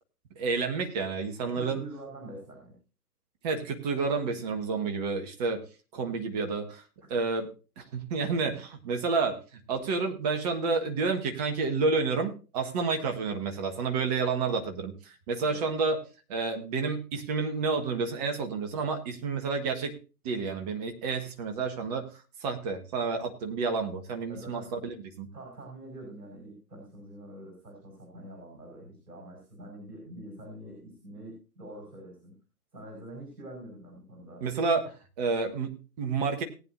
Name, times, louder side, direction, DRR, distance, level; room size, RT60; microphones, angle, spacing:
voice 1, 0.4-1.8 3.4-5.6 5.9-6.8 7.1-7.5 7.8-9.4 9.7-16.0 16.3-19.9 20.2-22.1 22.4-25.3 34.4-36.4, right 4 dB, 25° right, 6 dB, 1.5 m, -30 dB
voice 2, 1.4-2.8 15.4-15.7 24.3-24.7 25.3-32.4 32.7-34.4, right 1 dB, 70° right, 0 dB, 5.3 m, -45 dB
19.0 x 9.2 x 2.6 m, 0.33 s
figure-of-eight pair, 135°, 47 cm